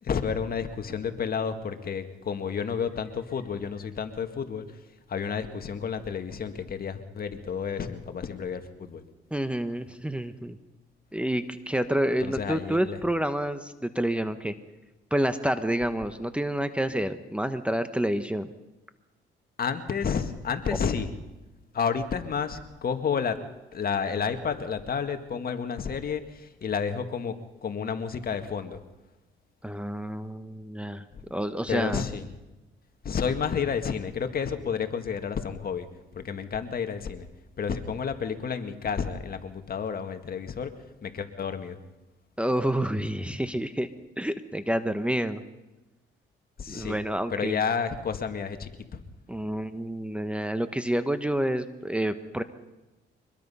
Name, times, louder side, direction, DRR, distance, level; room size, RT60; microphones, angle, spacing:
voice 1, 0.0-4.7 5.1-9.0 12.2-13.0 19.6-21.1 21.7-23.4 23.7-27.4 27.6-28.8 31.1-31.2 31.7-32.2 33.0-35.9 36.1-37.3 37.6-40.7 41.0-41.8 46.6-47.0 47.3-49.0, left 6 dB, 50° left, 7 dB, 1.8 m, -30 dB
voice 2, 9.3-10.6 11.1-14.5 15.1-18.5 29.6-31.0 31.3-32.0 42.4-43.9 44.2-45.4 46.7-47.6 49.3-52.4, right 1 dB, 5° right, 10 dB, 1.1 m, -28 dB
24.0 x 21.0 x 5.6 m, 1.1 s
cardioid pair, 90°, 20 cm